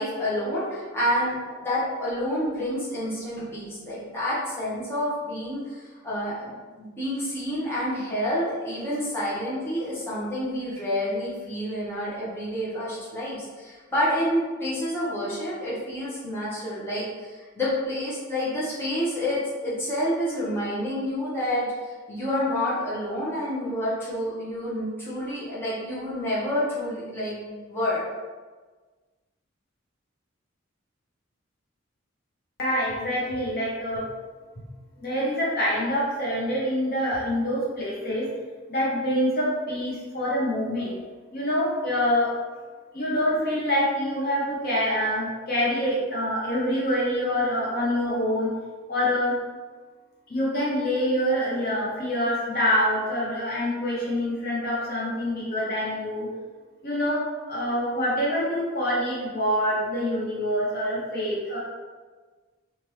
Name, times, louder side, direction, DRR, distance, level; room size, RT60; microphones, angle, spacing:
voice 1, 0.0-1.4 1.6-28.0, equal, 10° left, -10 dB, 0.8 m, -28 dB
voice 2, 32.6-34.0 35.0-38.3 38.7-40.9 41.3-42.3 42.9-48.5 48.9-49.3 50.3-56.3 56.8-57.2 57.5-61.6, equal, 50° left, -5 dB, 0.7 m, -26 dB
2.8 x 2.5 x 3.1 m, 1.4 s
head